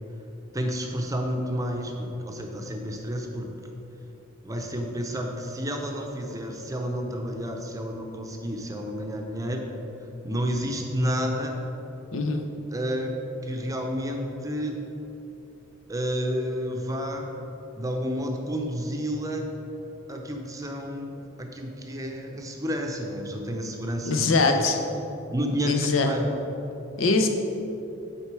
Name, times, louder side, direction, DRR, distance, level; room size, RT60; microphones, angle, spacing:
voice 1, 0.5-3.5 4.4-9.7 10.2-11.6 12.7-13.1 13.4-14.8 15.9-17.3 17.7-19.5 20.1-24.7 25.3-26.3, equal, 15° right, 2 dB, 0.6 m, -30 dB
voice 2, 12.1-12.4 24.0-24.8 25.6-26.1 27.0-27.3, left 3 dB, 80° left, 5 dB, 0.7 m, -22 dB
8.8 x 4.3 x 4.7 m, 3.0 s
head